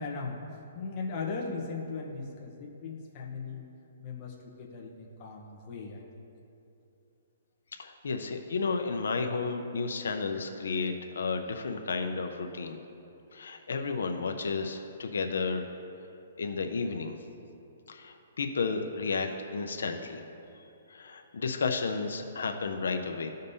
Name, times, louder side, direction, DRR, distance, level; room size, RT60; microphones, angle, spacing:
voice 1, 0.0-3.7 4.0-6.0, left 4 dB, 25° left, -2 dB, 0.9 m, -38 dB
voice 2, 7.8-12.8 13.3-15.6 16.4-17.1 17.9-20.2 20.9-23.3, left 4 dB, 85° left, 5 dB, 0.6 m, -32 dB
14.0 x 5.2 x 2.7 m, 2.8 s
hypercardioid pair, 170°, 0 cm